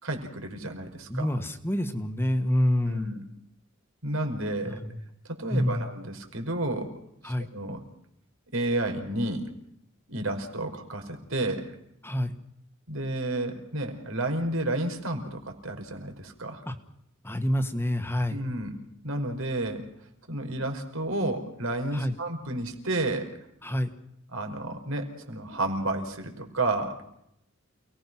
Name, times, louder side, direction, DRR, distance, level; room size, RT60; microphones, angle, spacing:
voice 1, 0.0-1.3 2.9-3.2 4.0-4.8 5.3-6.9 7.2-7.8 8.5-9.5 10.1-11.7 12.9-16.6 18.3-18.7 19.0-19.9 20.3-23.3 24.3-26.9, right 2 dB, 80° right, 5 dB, 5.1 m, -31 dB
voice 2, 1.1-3.1 4.7-5.0 5.5-5.9 7.2-7.5 12.0-12.3 16.7-16.8 17.2-18.4 21.9-22.1 23.6-23.9, left 1 dB, 10° left, 7 dB, 1.7 m, -27 dB
29.0 x 19.5 x 6.2 m, 0.76 s
head